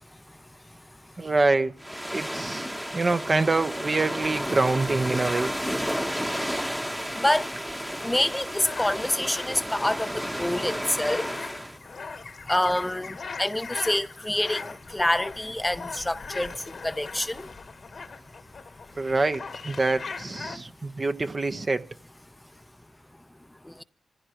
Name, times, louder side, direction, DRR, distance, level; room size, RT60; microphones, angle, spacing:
voice 1, 1.2-1.7 2.1-2.7 2.9-5.5 19.0-21.9, right 3 dB, 40° right, 1.0 m, -25 dB
sound 1, 1.8-11.8, equal, 5° right, 1.1 m, -32 dB
voice 2, 5.9-11.3 11.9-12.0 12.4-17.5 23.6-23.8, left 1 dB, 15° left, 0.7 m, -28 dB
sound 2, 8.0-20.6, left 4 dB, 65° left, 1.3 m, -40 dB
26.5 x 15.5 x 3.0 m
cardioid pair, 50°, 0 cm